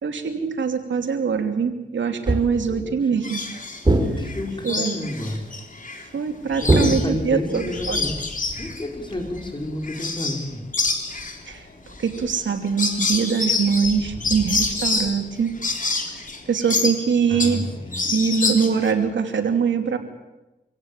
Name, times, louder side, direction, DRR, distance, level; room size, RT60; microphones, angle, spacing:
voice 1, 0.0-3.4 4.6-5.0 6.1-8.0 11.5-11.7 12.0-15.5 16.1-17.6 18.0-20.0, right 6 dB, 90° right, 6 dB, 2.8 m, -23 dB
sound 1, 2.3-2.8 3.8-4.6 6.7-7.6, right 1 dB, 25° right, 4.3 m, -21 dB
voice 2, 2.7-3.3 4.2-5.4 6.6-8.2 8.6-10.6 14.1-14.3 17.3-18.0, left 1 dB, 25° left, 3 dB, 5.4 m, -31 dB
sound 2, 3.2-3.8 4.2-6.0 6.4-10.5 10.7-17.6 17.9-18.9, left 3 dB, 45° left, 3.5 m, -27 dB
26.0 x 17.0 x 9.0 m, 1.0 s
cardioid pair, 70°, 19 cm